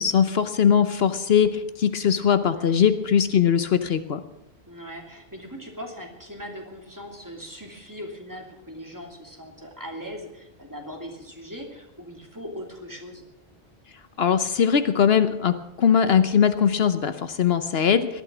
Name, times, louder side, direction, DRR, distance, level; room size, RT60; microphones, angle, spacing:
voice 1, 0.0-4.2 14.2-18.2, left 7 dB, 70° left, 11 dB, 1.0 m, -21 dB
voice 2, 2.5-2.8 4.7-13.2, equal, 15° right, 2 dB, 2.7 m, -40 dB
18.5 x 12.0 x 6.1 m, 0.85 s
omnidirectional pair, 1.1 m